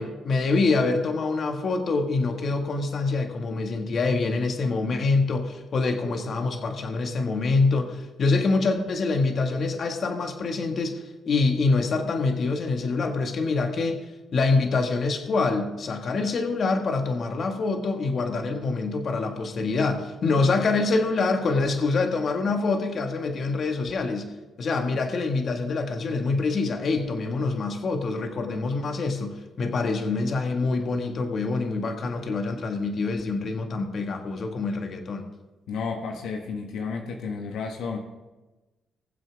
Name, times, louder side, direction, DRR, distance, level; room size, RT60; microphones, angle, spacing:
voice 1, 0.0-14.0 14.3-24.3 24.6-35.2, left 3 dB, 50° left, 4 dB, 1.8 m, -25 dB
voice 2, 35.7-38.0, left 5 dB, 80° left, 2 dB, 1.4 m, -32 dB
20.5 x 7.7 x 3.5 m, 1.1 s
cardioid pair, 90°, 0 cm